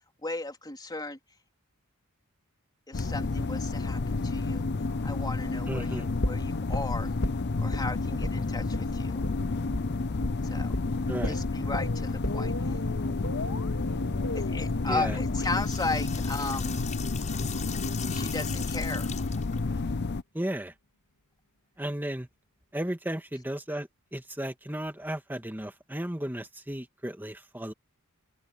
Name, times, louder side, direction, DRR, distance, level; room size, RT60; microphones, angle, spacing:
voice 1, 0.2-1.2 2.9-4.7 5.0-7.1 7.6-9.2 10.5-10.8 11.1-12.7 14.3-16.8 18.1-19.1, left 3 dB, 20° left, 3.5 m, -35 dB
sound 1, 2.9-20.2, left 3 dB, 55° left, 0.7 m, -30 dB
voice 2, 5.7-6.0 11.1-11.4 14.9-15.2 20.3-20.7 21.8-22.3 22.7-27.7, right 1 dB, 10° right, 2.0 m, -34 dB
sound 2, 6.2-7.8 8.2-8.4 8.7-8.9 9.2-9.4 9.7-9.9 10.2-10.4 10.7-10.9 11.2-17.2 17.5-17.6, left 1 dB, 85° left, 3.2 m, -35 dB
sound 3, 15.3-19.6, left 7 dB, 35° left, 7.4 m, -40 dB
head